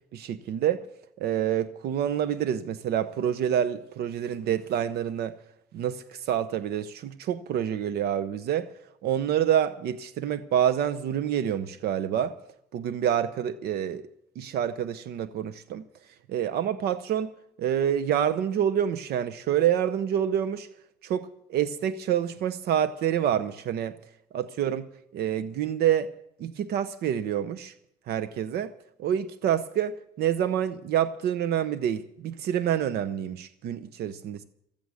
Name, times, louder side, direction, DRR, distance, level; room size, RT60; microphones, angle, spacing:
voice 1, 0.1-0.8 1.2-5.4 5.7-8.7 9.0-12.3 12.7-14.1 14.4-15.8 16.3-17.3 17.6-20.7 21.0-24.0 24.3-24.9 25.1-26.1 26.4-27.7 28.1-28.7 29.0-34.4, right 10 dB, 70° right, 0.8 m, -27 dB
15.5 x 14.0 x 6.3 m
cardioid pair, 110°, 17 cm